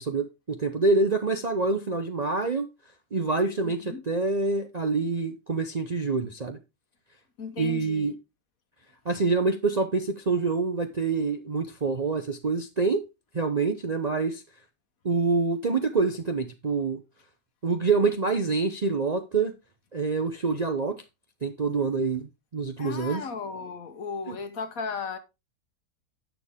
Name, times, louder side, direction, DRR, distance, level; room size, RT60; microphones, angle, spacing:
voice 1, 0.0-2.7 3.1-6.6 7.6-8.1 9.0-13.0 13.3-14.4 15.0-17.0 17.6-19.5 19.9-21.0 21.4-23.2 24.3-24.4, right 4 dB, 40° right, 0.6 m, -26 dB
voice 2, 3.6-4.0 7.4-8.1 22.8-25.2, left 5 dB, 60° left, 1.5 m, -35 dB
11.0 x 6.9 x 3.6 m
omnidirectional pair, 1.7 m